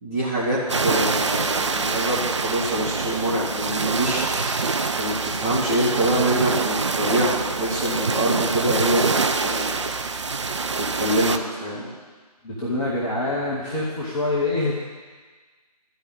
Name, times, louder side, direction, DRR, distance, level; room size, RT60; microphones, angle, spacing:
voice 1, 0.0-4.2 4.9-9.8 11.0-11.9, right 1 dB, 20° right, -9 dB, 1.7 m, -25 dB
sound 1, 0.7-11.4, right 4 dB, 45° right, 0.6 m, -25 dB
voice 2, 12.4-14.8, left 2 dB, 5° left, -8 dB, 0.6 m, -25 dB
12.5 x 4.8 x 8.7 m, 1.4 s
figure-of-eight pair, 155°, 20 cm